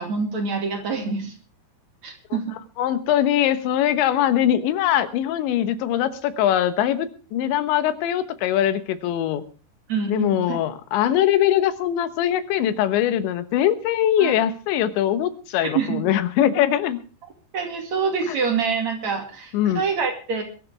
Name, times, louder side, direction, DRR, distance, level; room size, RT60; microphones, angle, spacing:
voice 1, 0.0-1.3 2.0-2.5 9.9-10.6 14.2-14.3 15.7-16.0 17.5-20.4, right 5 dB, 45° right, 3 dB, 3.1 m, -26 dB
voice 2, 2.8-9.4 10.1-17.0 19.5-19.8, left 11 dB, 90° left, 12 dB, 3.5 m, -22 dB
21.5 x 12.5 x 3.4 m, 0.36 s
omnidirectional pair, 5.1 m